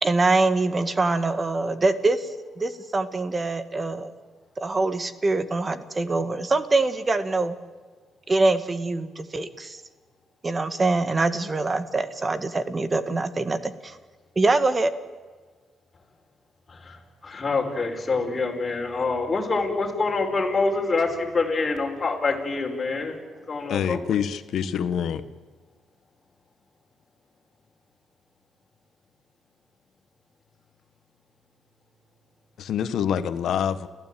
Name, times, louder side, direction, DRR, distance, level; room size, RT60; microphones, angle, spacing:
voice 1, 0.0-2.3 2.6-4.1 4.6-7.5 8.3-9.8 10.4-14.0 14.3-14.9, right 3 dB, 25° right, 12 dB, 1.7 m, -24 dB
voice 2, 16.7-23.2 23.5-24.0, left 3 dB, 30° left, 1 dB, 5.6 m, -26 dB
voice 3, 23.7-25.2 32.6-33.9, left 8 dB, 70° left, 13 dB, 1.3 m, -26 dB
29.5 x 15.5 x 9.2 m, 1.5 s
cardioid pair, 90°, 0 cm